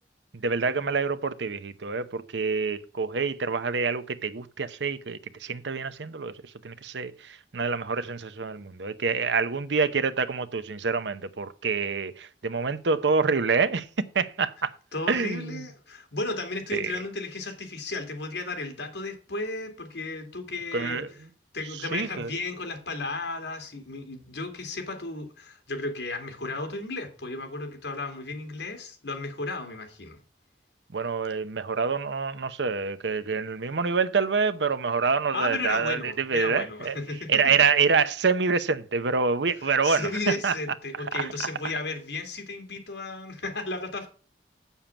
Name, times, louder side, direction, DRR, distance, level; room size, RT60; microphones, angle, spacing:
voice 1, 0.3-6.3 6.6-13.9 14.1-14.7 15.1-15.6 16.7-16.9 20.7-21.1 21.9-22.3 30.9-37.0 37.3-40.5 41.1-41.3, right 5 dB, 85° right, 0.8 m, -26 dB
voice 2, 14.9-21.0 21.5-30.2 35.3-37.5 39.6-44.1, left 2 dB, 80° left, 2.6 m, -34 dB
7.4 x 7.2 x 7.0 m
head